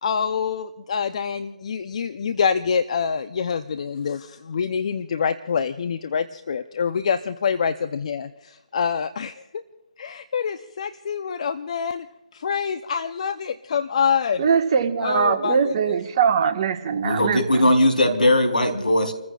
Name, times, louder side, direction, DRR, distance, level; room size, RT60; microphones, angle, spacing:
voice 1, 0.0-9.6 10.0-12.1 12.3-14.4 15.0-16.0, left 6 dB, 50° left, 10 dB, 0.7 m, -26 dB
voice 2, 14.4-17.7, right 6 dB, 35° right, 4 dB, 1.5 m, -22 dB
voice 3, 17.0-19.1, left 1 dB, 90° left, 4 dB, 3.8 m, -19 dB
30.0 x 15.0 x 2.5 m, 1.0 s
figure-of-eight pair, 145°, 4 cm